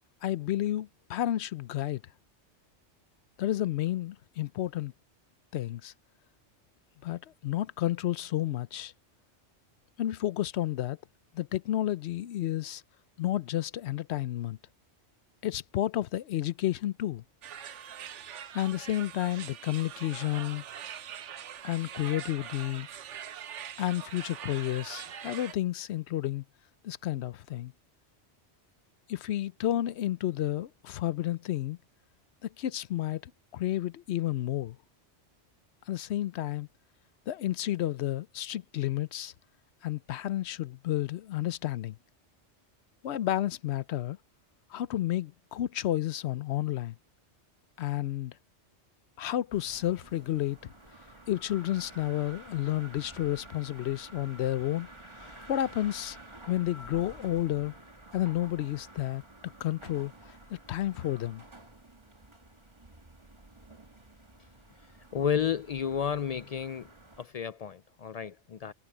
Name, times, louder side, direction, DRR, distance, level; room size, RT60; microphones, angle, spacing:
voice 1, 0.2-2.0 3.4-4.9 5.5-5.9 7.0-8.9 10.0-11.0 11.3-12.8 13.2-14.6 15.4-17.2 18.5-20.6 21.6-22.9 23.8-26.4 26.8-27.7 29.1-31.8 32.4-34.8 35.9-36.7 37.3-39.3 39.8-42.0 43.0-44.2 44.7-47.0 47.8-48.3 49.2-50.6 51.3-54.9 55.1-56.2 56.5-57.7 58.1-60.1 60.5-61.4, left 13 dB, 70° left, 0.9 m, -31 dB
sound 1, 17.4-25.5, right 9 dB, 80° right, 1.1 m, -43 dB
sound 2, 49.5-67.3, right 1 dB, 25° right, 2.0 m, -51 dB
voice 2, 65.1-66.9 67.2-68.7, left 8 dB, 85° left, 0.3 m, -31 dB
omnidirectional pair, 1.2 m